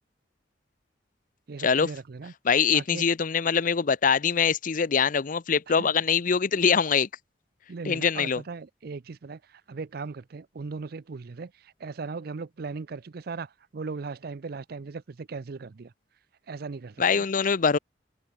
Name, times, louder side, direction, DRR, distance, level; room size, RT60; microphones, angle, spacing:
voice 1, 1.5-2.3 2.7-3.1 5.8-5.9 7.7-15.9 16.5-17.2, right 4 dB, 55° right, 0.5 m, -38 dB
voice 2, 2.5-7.1 7.9-8.4 17.0-17.8, left 6 dB, 45° left, 0.6 m, -23 dB
head